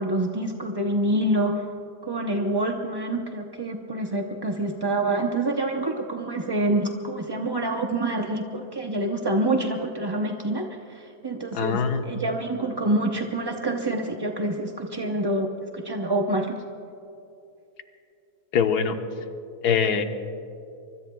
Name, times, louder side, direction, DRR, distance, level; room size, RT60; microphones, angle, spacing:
voice 1, 0.0-1.6 2.0-16.6, right 1 dB, 25° right, 2 dB, 0.5 m, -27 dB
voice 2, 11.5-12.2 18.5-19.0 19.6-20.0, left 6 dB, 80° left, 6 dB, 1.5 m, -23 dB
25.0 x 24.5 x 2.3 m, 2.8 s
omnidirectional pair, 1.7 m